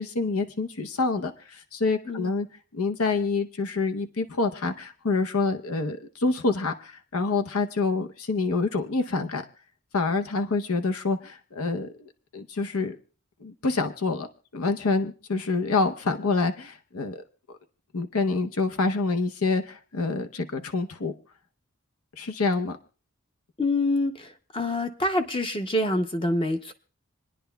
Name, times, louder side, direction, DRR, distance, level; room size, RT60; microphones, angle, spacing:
voice 1, 0.0-2.5 2.7-9.4 9.9-13.0 13.4-14.3 14.5-17.2 17.9-21.1 22.2-22.8, left 3 dB, 85° left, 6 dB, 0.8 m, -27 dB
voice 2, 23.6-26.7, left 1 dB, 25° left, 7 dB, 0.6 m, -26 dB
27.5 x 10.0 x 2.3 m, 0.38 s
head